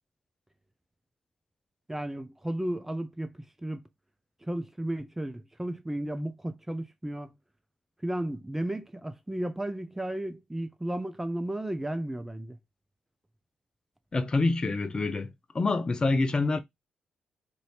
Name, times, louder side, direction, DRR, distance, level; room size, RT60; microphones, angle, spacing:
voice 1, 1.9-3.8 4.4-7.3 8.0-12.6, right 1 dB, 10° right, 0.5 m, -34 dB
voice 2, 14.1-16.6, left 3 dB, 35° left, 0.6 m, -26 dB
2.7 x 2.7 x 3.1 m
hypercardioid pair, 40°, 2 cm